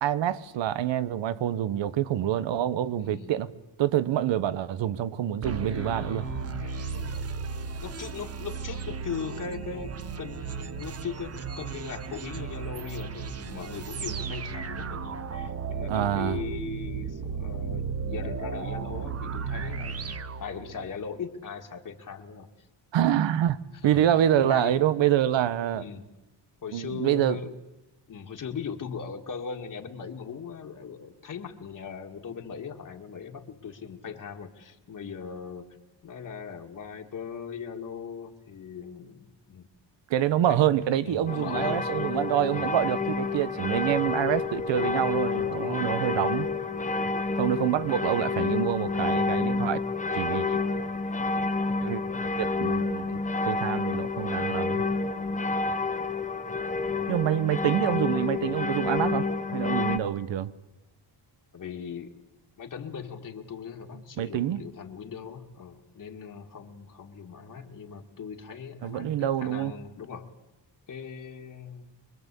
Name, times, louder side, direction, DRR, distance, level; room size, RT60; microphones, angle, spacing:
voice 1, 0.0-3.5 3.8-6.3 15.9-16.4 22.9-23.6 23.8-25.8 26.7-27.4 40.1-46.5 47.4-49.8 50.1-50.6 51.8-52.0 52.4-53.2 53.5-54.9 57.1-60.5 64.2-64.6 68.8-69.7, right 11 dB, 85° right, 1.2 m, -26 dB
voice 2, 3.0-3.3 5.4-7.3 7.8-22.5 23.0-23.2 23.8-24.0 24.3-24.7 25.7-26.1 26.6-27.5 28.1-35.7 36.0-39.7 40.3-40.7 41.0-41.9 42.4-42.7 45.5-45.9 47.0-47.3 61.5-62.1 62.6-70.3 70.9-71.9, left 6 dB, 45° left, 2.0 m, -39 dB
sound 1, 5.4-21.0, right 5 dB, 35° right, 1.0 m, -35 dB
sound 2, 41.3-60.0, left 3 dB, 15° left, 1.2 m, -29 dB
25.0 x 23.0 x 8.3 m
wide cardioid pair, 165°, 43 cm